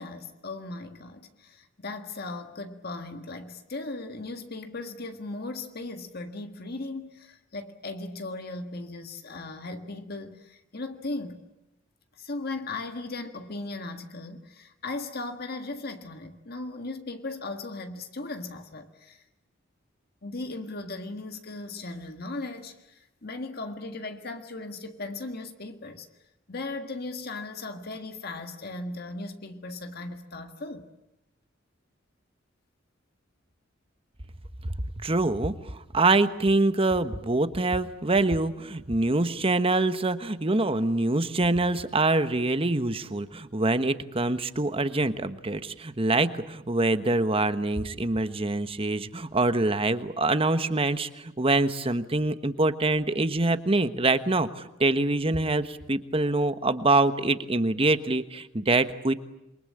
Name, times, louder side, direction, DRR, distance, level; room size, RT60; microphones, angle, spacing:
voice 1, 0.0-11.4 12.2-19.2 20.2-26.1 26.5-30.9, left 2 dB, 50° left, 1.7 m, -37 dB
voice 2, 35.0-59.1, right 2 dB, 30° right, 1.2 m, -25 dB
28.0 x 23.5 x 8.7 m
head